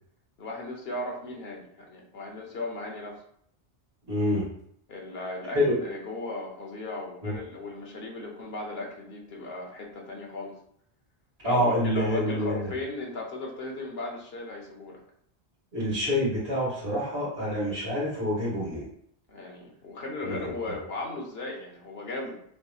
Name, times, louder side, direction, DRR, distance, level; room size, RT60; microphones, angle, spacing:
voice 1, 0.4-3.2 4.9-10.6 11.4-15.0 19.3-22.4, left 2 dB, 65° left, 0 dB, 1.2 m, -37 dB
voice 2, 4.1-4.4 5.5-5.8 7.2-7.3 11.4-12.7 15.7-18.8 20.2-20.4 20.6-20.7, equal, 75° right, -7 dB, 2.2 m, -26 dB
5.9 x 3.0 x 2.3 m, 0.67 s
omnidirectional pair, 1.1 m